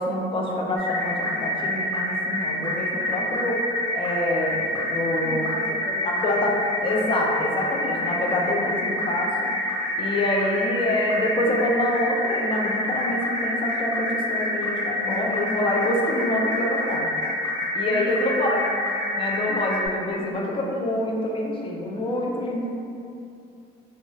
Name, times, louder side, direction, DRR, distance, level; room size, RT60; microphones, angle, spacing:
voice 1, 0.0-3.6 3.9-5.5 6.0-6.5 6.8-9.5 10.0-17.1 17.7-18.7 19.2-22.8, left 1 dB, 30° left, -1 dB, 0.5 m, -26 dB
sound 1, 0.8-19.9, left 1 dB, 15° left, 1.0 m, -27 dB
voice 2, 5.2-6.2 17.8-18.7, equal, 10° right, -6 dB, 0.7 m, -35 dB
2.9 x 2.3 x 3.0 m, 2.5 s
cardioid pair, 110°, 17 cm